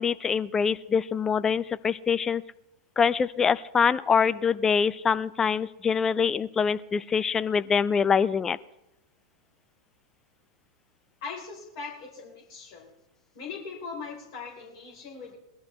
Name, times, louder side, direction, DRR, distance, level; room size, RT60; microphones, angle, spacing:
voice 1, 0.0-2.4 3.0-8.6, left 6 dB, 20° left, 17 dB, 0.5 m, -24 dB
voice 2, 11.2-12.9 13.3-15.4, left 5 dB, 55° left, -2 dB, 4.0 m, -40 dB
19.5 x 12.5 x 3.2 m, 0.89 s
figure-of-eight pair, 95°, 2 cm